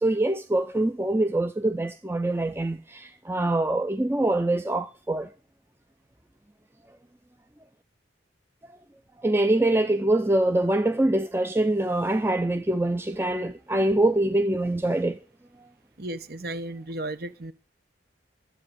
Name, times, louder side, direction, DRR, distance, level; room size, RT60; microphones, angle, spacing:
voice 1, 0.0-5.3 9.2-15.2, right 1 dB, 10° right, 0.5 m, -24 dB
voice 2, 16.0-17.5, right 1 dB, 50° right, 1.1 m, -34 dB
12.5 x 8.5 x 6.4 m
head